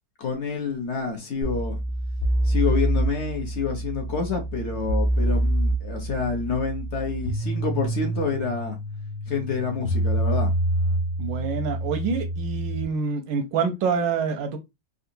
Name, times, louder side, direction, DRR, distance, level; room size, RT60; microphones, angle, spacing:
voice 1, 0.2-1.8 2.4-8.8 9.3-10.5, left 5 dB, 55° left, 0.8 m, -28 dB
sound 1, 1.4-12.8, right 1 dB, 85° left, 1.4 m, -26 dB
voice 2, 11.2-14.6, right 5 dB, 85° right, 1.4 m, -26 dB
3.8 x 2.3 x 2.6 m
omnidirectional pair, 1.9 m